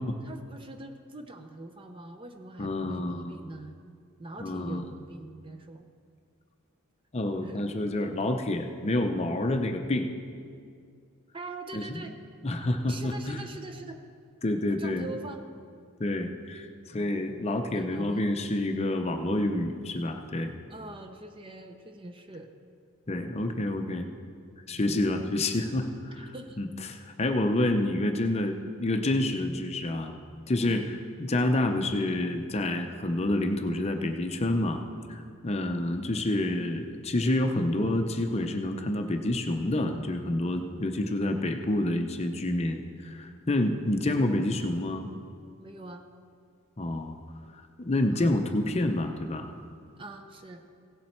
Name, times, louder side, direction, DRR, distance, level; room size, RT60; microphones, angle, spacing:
voice 1, 0.2-3.8 4.2-5.9 7.4-7.6 11.3-12.1 12.9-14.0 14.7-15.4 17.7-18.2 20.7-22.5 24.7-25.0 26.2-26.6 30.6-30.8 45.6-46.0 48.1-48.3 50.0-50.6, right 2 dB, 25° right, 6 dB, 0.6 m, -43 dB
voice 2, 2.6-3.4 4.4-4.9 7.1-10.1 11.7-12.1 12.4-13.4 14.4-15.1 16.0-20.5 23.1-24.1 24.7-30.1 30.5-34.8 35.1-45.1 46.8-47.2 47.8-49.5, left 1 dB, 30° left, 5 dB, 0.6 m, -28 dB
16.5 x 7.4 x 4.4 m, 2.2 s
head